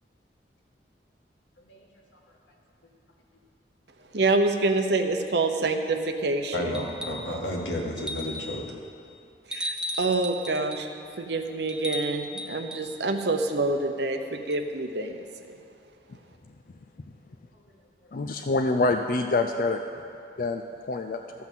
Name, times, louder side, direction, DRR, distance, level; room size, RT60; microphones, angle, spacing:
voice 1, 4.1-6.8 9.5-10.9 11.2-15.2, right 2 dB, 70° right, 6 dB, 0.8 m, -26 dB
voice 2, 6.5-8.6 14.2-14.3, left 1 dB, 85° left, -1 dB, 1.9 m, -32 dB
sound 1, 6.7-7.3 8.0-8.6 9.5-10.9 11.7-12.9 14.5-14.6, equal, 5° right, 0.6 m, -35 dB
voice 3, 18.1-19.8 20.4-20.6 20.9-21.2, left 3 dB, 50° left, 5 dB, 0.4 m, -25 dB
14.0 x 5.9 x 7.5 m, 2.5 s
head